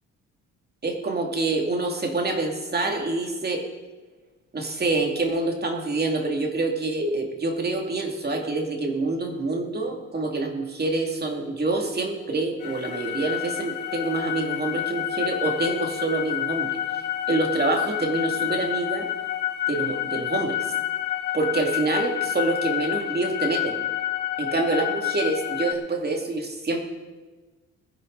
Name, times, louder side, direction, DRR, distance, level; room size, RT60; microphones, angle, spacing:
voice 1, 0.8-3.6 4.5-16.7 17.3-19.1 19.7-20.6 21.3-23.8 24.4-26.8, right 2 dB, 30° right, 2 dB, 2.4 m, -26 dB
sound 1, 12.6-25.7, left 12 dB, 85° left, 1.1 m, -29 dB
19.5 x 10.5 x 4.0 m, 1.3 s
cardioid pair, 90°, 30 cm